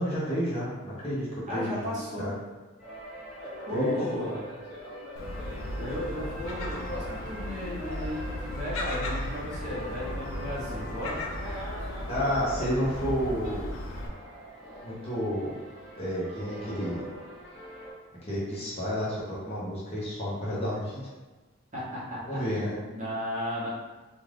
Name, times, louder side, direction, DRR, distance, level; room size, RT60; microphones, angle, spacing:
voice 1, 0.0-2.3 3.7-4.1 12.1-13.7 14.8-15.5 16.0-17.0 18.3-21.0 22.3-22.8, equal, 30° left, -8 dB, 0.7 m, -31 dB
voice 2, 1.5-2.3 3.7-4.4 5.8-11.2 21.7-22.7 22.9-23.7, left 1 dB, 35° right, -8 dB, 0.8 m, -34 dB
sound 1, 2.8-17.9, equal, 5° right, 1.0 m, -43 dB
Gull seagull, 5.2-14.1, left 1 dB, 65° left, 0.4 m, -36 dB
2.5 x 2.4 x 3.3 m, 1.2 s
head